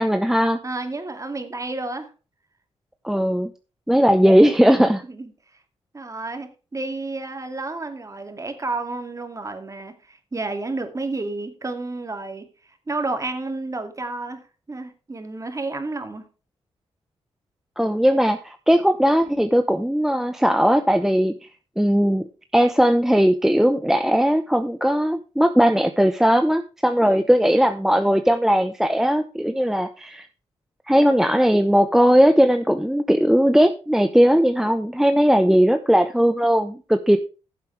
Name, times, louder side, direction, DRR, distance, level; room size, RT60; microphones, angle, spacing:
voice 1, 0.0-0.6 3.0-3.5 3.9-5.0 17.8-21.3 21.8-22.3 22.5-30.3 30.9-37.2, equal, 5° right, 8 dB, 0.8 m, -18 dB
voice 2, 0.6-2.1 5.0-5.3 5.9-12.4 12.9-16.2 27.2-27.3, right 2 dB, 25° right, 7 dB, 2.3 m, -31 dB
15.0 x 7.5 x 3.3 m, 0.33 s
cardioid pair, 75°, 12 cm